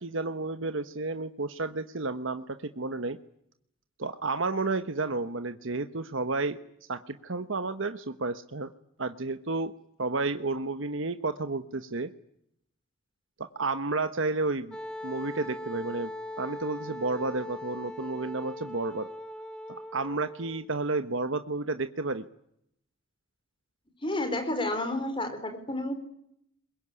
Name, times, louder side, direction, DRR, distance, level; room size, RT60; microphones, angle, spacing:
voice 1, 0.0-3.2 4.0-6.6 6.9-8.7 9.0-9.7 10.0-12.1 13.4-14.8 15.0-16.1 16.4-19.1 19.9-22.2, right 3 dB, 75° right, 9 dB, 1.1 m, -31 dB
Wind instrument woodwind instrument, 14.7-20.7, left 1 dB, 5° left, 1.4 m, -40 dB
voice 2, 24.0-25.9, left 1 dB, 25° left, 7 dB, 4.4 m, -30 dB
23.5 x 22.0 x 9.8 m, 0.72 s
head